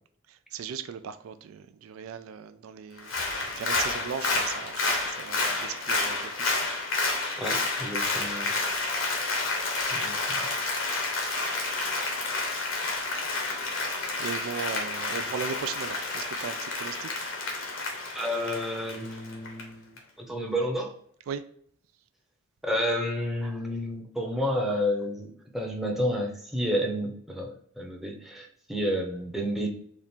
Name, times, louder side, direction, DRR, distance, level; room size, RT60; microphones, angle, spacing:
voice 1, 0.3-6.5 14.2-17.1 21.3-21.4, right 7 dB, 80° right, 0.3 m, -37 dB
Applause, 3.0-19.6 20.0-20.1, left 3 dB, 70° left, 1.0 m, -30 dB
voice 2, 7.4-8.5 9.9-10.5 18.1-20.0 20.3-20.9 22.6-29.7, equal, ahead, 0.7 m, -30 dB
4.2 x 2.4 x 3.5 m
head